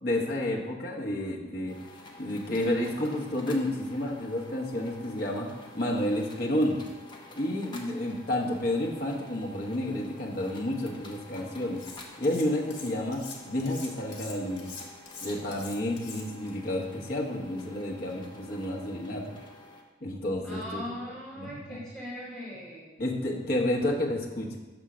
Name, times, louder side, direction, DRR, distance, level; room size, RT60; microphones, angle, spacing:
voice 1, 0.0-1.7 2.2-5.5 5.7-6.8 7.4-11.8 12.2-14.7 15.2-19.3 20.0-20.8 21.4-21.8 23.0-24.6, left 1 dB, 55° left, -1 dB, 1.1 m, -30 dB
sound 1, 1.7-19.8, left 2 dB, 25° left, 0.8 m, -49 dB
Cutlery silverware, 11.8-12.4 12.7-16.5, left 5 dB, 75° left, 1.3 m, -43 dB
voice 2, 20.4-23.0, equal, 5° left, -9 dB, 2.4 m, -40 dB
7.0 x 3.7 x 6.2 m, 1.2 s
head